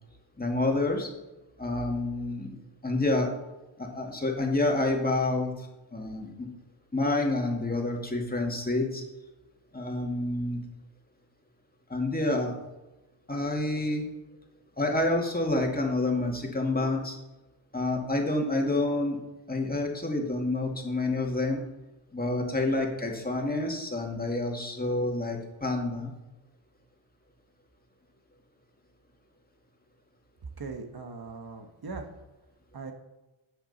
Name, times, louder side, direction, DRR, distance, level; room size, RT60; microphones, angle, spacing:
voice 1, 0.4-1.1 1.6-2.6 2.8-3.3 3.8-5.7 5.9-6.5 6.9-9.0 9.7-10.6 11.9-12.5 13.3-14.0 14.8-17.2 17.7-19.2 19.5-21.6 22.1-26.1, left 2 dB, 20° left, 1 dB, 2.3 m, -28 dB
voice 2, 30.6-32.1 32.7-32.9, right 4 dB, 50° right, 5 dB, 1.4 m, -39 dB
12.0 x 8.1 x 4.2 m, 1.0 s
cardioid pair, 80°, 49 cm